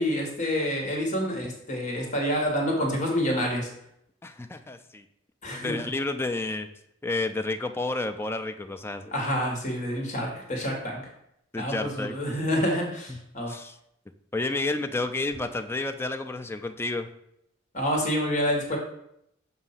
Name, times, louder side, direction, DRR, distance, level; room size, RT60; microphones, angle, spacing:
voice 1, 0.0-3.7 5.4-5.8 9.1-11.0 11.6-13.5 17.7-18.8, equal, 40° left, 0 dB, 1.3 m, -27 dB
voice 2, 4.2-5.0 5.5-6.7 7.0-9.1 11.5-12.1 13.1-13.2 13.5-13.8 14.3-17.1, left 2 dB, 10° left, 6 dB, 0.3 m, -30 dB
6.4 x 2.7 x 5.6 m, 0.78 s
head